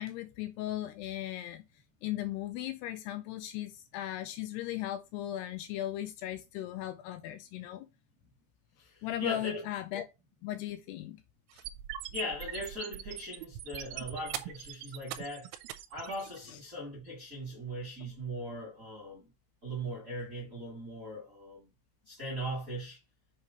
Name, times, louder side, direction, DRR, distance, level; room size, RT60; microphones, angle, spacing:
voice 1, 0.0-1.6 2.0-7.9 9.0-10.0 10.4-11.2 16.5-16.6, left 13 dB, 85° left, 2.5 m, -37 dB
voice 2, 8.8-9.6 12.1-15.5 15.9-19.3 19.6-21.7 22.0-23.0, equal, 35° right, 1.3 m, -39 dB
sound 1, 11.5-16.5, right 12 dB, 85° right, 2.8 m, -41 dB
7.3 x 3.0 x 5.1 m
omnidirectional pair, 5.1 m